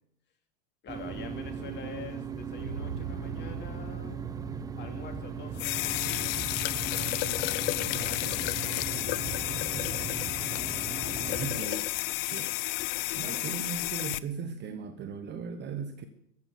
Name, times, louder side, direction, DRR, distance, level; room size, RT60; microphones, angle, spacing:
voice 1, 0.8-4.2 4.8-6.4 7.3-10.0 13.1-13.5, left 5 dB, 25° left, 4 dB, 2.6 m, -46 dB
sound 1, 0.9-11.6, right 6 dB, 10° right, 0.6 m, -38 dB
sound 2, 2.6-5.8, right 6 dB, 50° right, 5.6 m, -42 dB
sound 3, 5.5-14.2, left 19 dB, 40° left, 0.5 m, -31 dB
voice 2, 11.2-11.9 12.2-12.5 13.1-16.1, right 6 dB, 25° right, 9 dB, 0.9 m, -38 dB
14.0 x 8.6 x 8.1 m, 0.76 s
hypercardioid pair, 130°, 44 cm